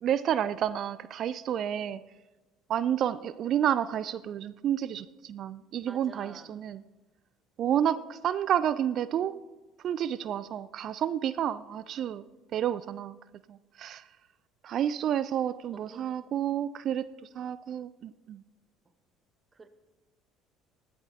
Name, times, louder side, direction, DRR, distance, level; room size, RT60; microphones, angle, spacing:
voice 1, 0.0-2.0 2.7-6.8 7.6-9.4 9.8-12.2 12.5-13.2 13.5-14.1 14.6-18.4, right 10 dB, 50° right, 17 dB, 0.4 m, -30 dB
voice 2, 5.9-6.5 14.7-15.1 15.7-16.2 19.5-19.7, right 3 dB, 25° right, 10 dB, 1.2 m, -51 dB
19.5 x 13.5 x 2.8 m, 1.2 s
figure-of-eight pair, 60°, 0 cm